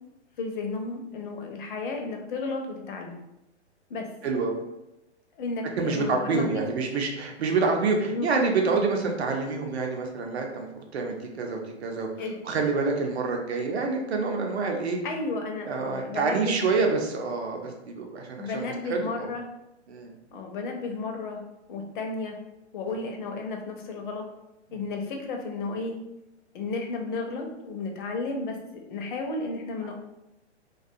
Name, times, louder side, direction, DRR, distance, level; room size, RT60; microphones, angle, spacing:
voice 1, 0.4-3.1 3.9-4.1 5.4-6.6 8.1-8.3 12.2-12.4 15.0-16.5 18.4-19.4 20.3-21.4 21.7-22.4 22.7-24.2 24.7-26.0 26.5-28.6 28.9-29.9, left 3 dB, 45° left, 2 dB, 0.6 m, -33 dB
voice 2, 4.2-4.6 5.8-12.1 12.4-15.0 15.6-19.3 19.9-20.1 29.8-29.9, right 4 dB, 65° right, 2 dB, 0.7 m, -27 dB
2.4 x 2.3 x 2.6 m, 0.91 s
figure-of-eight pair, 115°, 35 cm